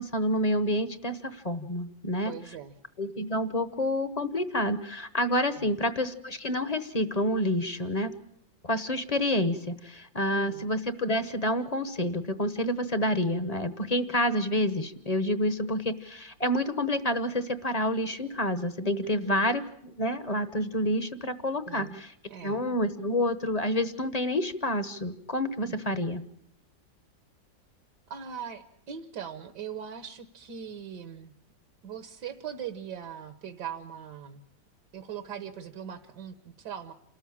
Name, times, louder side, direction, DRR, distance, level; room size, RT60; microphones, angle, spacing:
voice 1, 0.0-2.3 3.0-8.1 8.6-22.1 22.4-26.2, left 1 dB, 30° left, 12 dB, 0.8 m, -28 dB
voice 2, 2.2-2.7 5.5-5.7 10.3-10.6 19.0-19.6 21.7-22.0 22.3-22.6 25.6-26.1 28.1-31.3 31.8-34.4 34.9-36.9, right 8 dB, 70° right, 10 dB, 1.7 m, -40 dB
28.0 x 13.5 x 8.5 m, 0.75 s
omnidirectional pair, 1.9 m